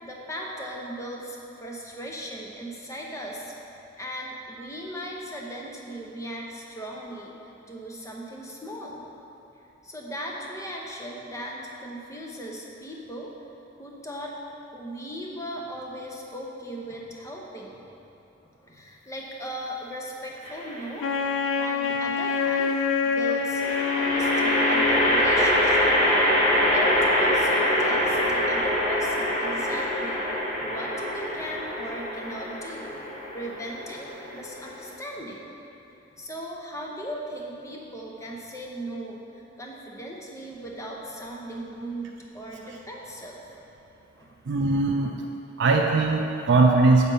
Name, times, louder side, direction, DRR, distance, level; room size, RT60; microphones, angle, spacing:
voice 1, 0.0-9.0 9.8-13.3 13.8-14.3 14.7-17.9 18.4-21.1 21.6-23.6 23.9-25.9 26.7-35.5 36.1-43.6 44.2-44.4, right 1 dB, 15° left, -2 dB, 0.9 m, -38 dB
sound 1, 20.4-21.0 23.5-34.9, equal, 35° left, 1.3 m, -24 dB
Wind instrument woodwind instrument, 21.0-25.4, left 5 dB, 85° left, 0.4 m, -26 dB
voice 2, 44.5-45.1 45.6-47.1, right 3 dB, 70° right, 1 dB, 0.5 m, -20 dB
7.9 x 4.4 x 5.5 m, 2.9 s
head